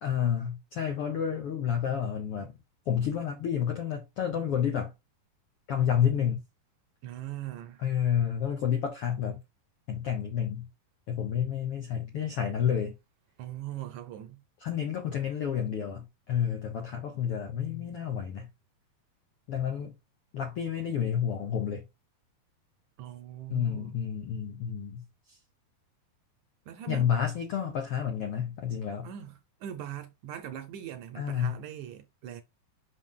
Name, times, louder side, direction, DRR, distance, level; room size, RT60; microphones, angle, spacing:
voice 1, 0.0-2.5 2.9-4.9 5.7-6.4 7.8-9.4 9.9-10.7 11.1-12.9 14.6-18.5 19.5-19.9 20.3-21.8 23.5-25.4 26.9-29.1 31.1-31.6, left 8 dB, 75° left, 1.3 m, -30 dB
voice 2, 7.0-7.8 13.4-14.4 23.0-24.0 26.7-27.1 29.0-32.4, right 11 dB, 75° right, 1.9 m, -41 dB
5.9 x 5.7 x 3.7 m
omnidirectional pair, 4.1 m